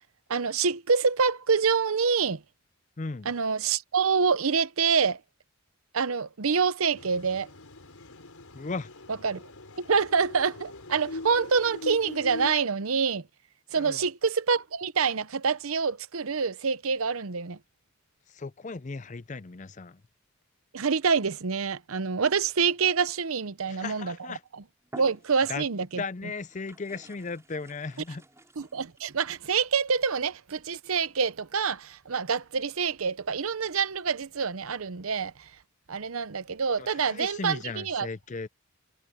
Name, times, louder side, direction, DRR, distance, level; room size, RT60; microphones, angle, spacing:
voice 1, 0.3-2.4 3.2-5.2 5.9-7.5 9.1-9.4 9.8-13.3 13.7-17.6 20.7-24.6 24.9-26.0 28.6-35.5 35.9-38.1, right 5 dB, 75° right, 0.8 m, -26 dB
voice 2, 3.0-3.3 8.5-8.9 13.7-14.0 18.3-20.0 23.7-24.4 25.5-25.6 26.0-28.2 36.8-38.5, left 4 dB, 35° left, 0.5 m, -36 dB
sound 1, 7.0-12.6, left 2 dB, 85° left, 4.5 m, -42 dB
sound 2, 24.3-24.4 24.8-25.8 26.4-29.2, right 1 dB, 15° right, 6.0 m, -51 dB
head